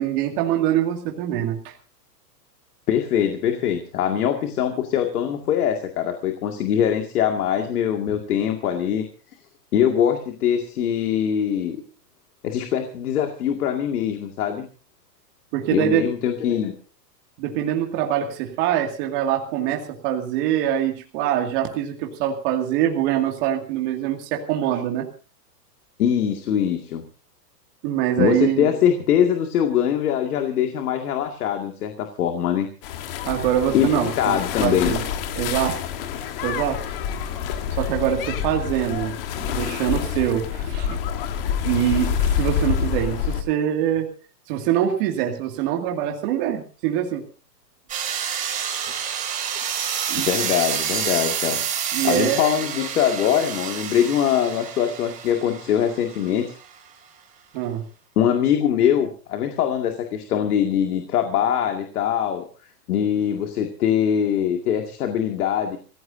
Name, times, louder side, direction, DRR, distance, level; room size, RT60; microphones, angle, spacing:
voice 1, 0.0-1.7 15.5-16.1 17.4-25.1 27.8-28.7 33.2-35.0 35.4-35.8 36.4-36.8 37.8-41.0 41.6-44.1 44.5-47.2 50.1-50.3 51.9-52.5 57.5-57.9, right 11 dB, 30° right, 2 dB, 2.2 m, -24 dB
voice 2, 2.9-9.1 9.7-11.8 12.4-14.7 15.7-16.8 26.0-27.0 28.2-32.7 33.7-35.0 50.3-51.6 52.0-56.6 58.2-62.5 62.9-65.8, left 9 dB, 60° left, 4 dB, 2.3 m, -22 dB
sound 1, 32.8-43.4, left 8 dB, 35° left, 1.5 m, -27 dB
sound 2, 47.9-56.5, right 8 dB, 15° right, 2.5 m, -28 dB
26.5 x 16.0 x 2.7 m, 0.35 s
supercardioid pair, 165°, 50 cm